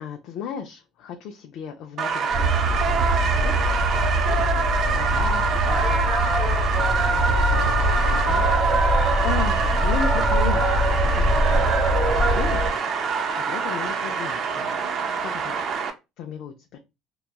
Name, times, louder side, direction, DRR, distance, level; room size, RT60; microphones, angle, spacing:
voice 1, 0.0-2.5 2.8-3.6 3.9-4.7 5.0-6.5 6.9-8.9 9.2-11.8 12.2-12.8 13.1-14.8 15.2-15.6 16.2-16.8, left 7 dB, 55° left, 3 dB, 0.4 m, -36 dB
sound 1, 2.0-15.9, right 5 dB, 40° right, 0.4 m, -25 dB
sound 2, 2.3-12.7, right 1 dB, 15° right, 1.0 m, -22 dB
2.9 x 2.2 x 2.2 m, 0.24 s
cardioid pair, 155°, 0 cm